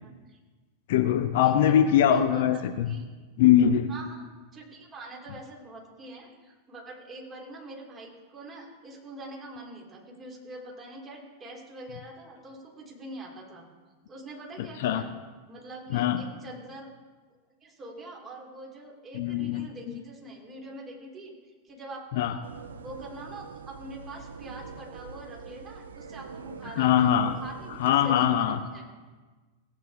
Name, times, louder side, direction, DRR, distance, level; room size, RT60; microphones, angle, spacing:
voice 1, 0.0-0.4 1.4-3.0 3.9-13.6 14.1-15.1 15.5-16.9 17.6-21.3 21.6-28.3 28.7-28.8, right 2 dB, 25° right, -2 dB, 3.2 m, -44 dB
voice 2, 0.9-3.0 3.4-3.9 14.6-15.0 15.9-16.2 19.1-19.7 22.1-22.4 26.8-27.4 27.8-28.6, left 10 dB, 55° left, 10 dB, 0.6 m, -22 dB
sound 1, 22.4-28.0, right 5 dB, 70° right, 0.6 m, -44 dB
17.5 x 8.9 x 3.6 m, 1.3 s
figure-of-eight pair, 90°, 0 cm